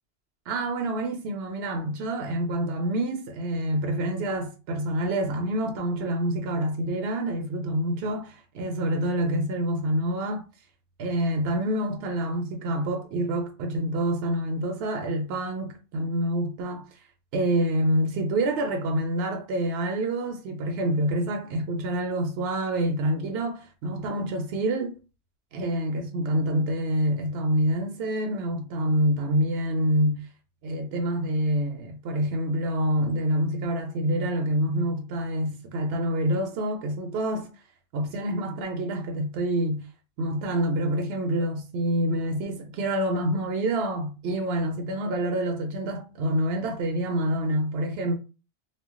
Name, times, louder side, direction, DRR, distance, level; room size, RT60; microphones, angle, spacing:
voice 1, 0.5-10.4 11.0-16.8 17.3-25.0 25.5-30.3 30.6-37.5 37.9-39.8 40.2-48.1, right 1 dB, 70° right, 0.8 m, -27 dB
2.2 x 2.2 x 3.6 m
omnidirectional pair, 1.2 m